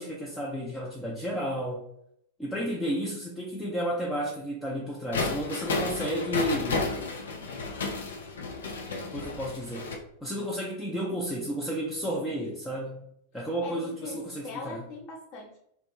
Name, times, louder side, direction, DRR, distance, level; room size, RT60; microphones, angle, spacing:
voice 1, 0.0-1.9 2.4-6.9 9.1-9.9 10.2-13.0 13.3-14.8, equal, 5° left, -4 dB, 0.4 m, -32 dB
sound 1, 5.1-9.9, left 3 dB, 65° left, 0.4 m, -32 dB
voice 2, 13.6-15.6, left 3 dB, 40° left, -1 dB, 0.7 m, -41 dB
2.4 x 2.1 x 2.9 m, 0.72 s
figure-of-eight pair, 90°, 0 cm